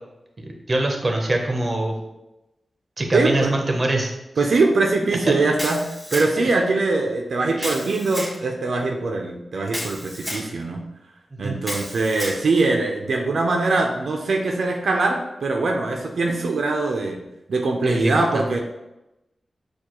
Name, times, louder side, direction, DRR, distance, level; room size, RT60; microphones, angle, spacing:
voice 1, 0.7-2.0 3.0-4.1 5.3-5.4 7.6-7.8 11.3-11.6 17.8-18.6, right 1 dB, 30° right, 2 dB, 0.7 m, -23 dB
voice 2, 3.1-3.5 4.4-10.8 11.4-17.2 17.5-18.6, right 3 dB, 75° right, 2 dB, 0.4 m, -22 dB
Camera, 5.6-6.5 7.6-8.3 9.7-10.5 11.6-12.4, equal, 20° left, 1.3 m, -31 dB
6.7 x 2.3 x 2.9 m, 0.94 s
wide cardioid pair, 115°, 0 cm